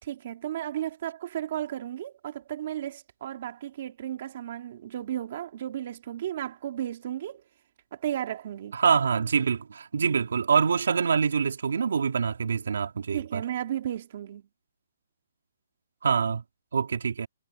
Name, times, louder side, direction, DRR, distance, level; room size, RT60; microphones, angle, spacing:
voice 1, 0.0-7.4 7.9-8.8 13.1-14.5, right 11 dB, 35° right, 3.2 m, -34 dB
voice 2, 8.7-13.4 16.0-16.4 16.7-17.3, right 6 dB, 65° right, 3.1 m, -25 dB
hypercardioid pair, 175°, 0 cm